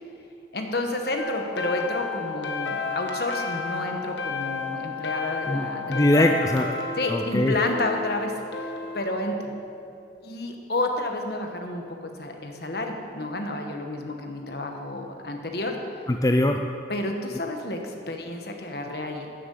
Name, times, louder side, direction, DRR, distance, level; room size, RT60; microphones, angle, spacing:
voice 1, 0.5-6.3 7.0-8.3 8.9-9.4 10.2-15.8 16.9-19.3, left 2 dB, 55° left, 3 dB, 1.4 m, -30 dB
sound 1, 1.2-9.0, left 4 dB, 75° left, 1.5 m, -32 dB
voice 2, 5.5-6.8 7.1-7.5 16.1-16.6, left 1 dB, 20° left, 4 dB, 0.4 m, -22 dB
12.0 x 7.8 x 8.5 m, 2.7 s
head